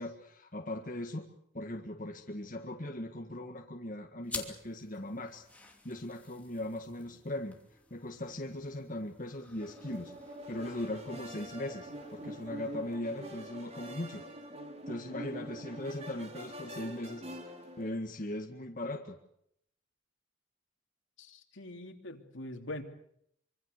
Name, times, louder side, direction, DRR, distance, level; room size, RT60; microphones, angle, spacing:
voice 1, 0.0-5.5 5.8-7.6 7.9-10.1 10.5-14.2 14.9-17.2 17.8-19.2, left 1 dB, 40° left, 2 dB, 1.8 m, -39 dB
sound 1, 4.2-13.2, left 3 dB, 5° left, 2.8 m, -50 dB
sound 2, 9.6-17.9, equal, 35° right, 3.7 m, -45 dB
voice 2, 21.2-22.8, left 1 dB, 75° left, 4 dB, 3.3 m, -43 dB
25.5 x 24.5 x 6.7 m, 0.72 s
head